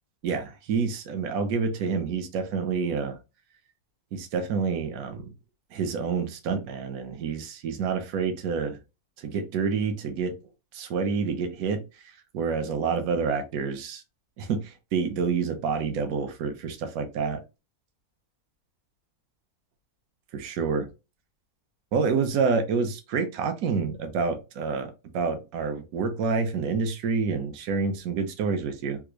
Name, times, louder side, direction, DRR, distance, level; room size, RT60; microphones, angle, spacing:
voice 1, 0.2-3.2 4.1-5.3 5.7-8.8 9.2-10.3 10.7-14.0 14.4-17.4 20.3-20.9 21.9-29.0, right 5 dB, 70° right, 7 dB, 1.1 m, -28 dB
3.5 x 2.4 x 3.0 m, 0.27 s
omnidirectional pair, 1.6 m